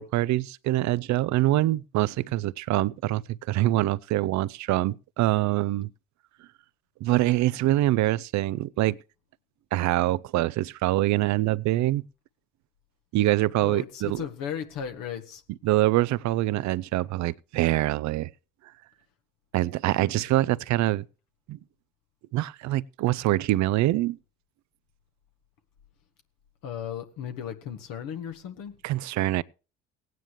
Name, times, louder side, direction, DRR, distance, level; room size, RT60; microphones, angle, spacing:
voice 1, 0.0-3.2 3.5-5.9 7.0-9.0 9.7-12.0 13.1-14.2 15.6-18.3 19.5-21.0 21.5-21.6 22.3-24.2 28.8-29.4, right 16 dB, 50° right, 0.5 m, -24 dB
voice 2, 13.6-15.4 26.6-28.7, left 8 dB, 65° left, 1.6 m, -35 dB
17.5 x 9.3 x 3.2 m
hypercardioid pair, 60°, 36 cm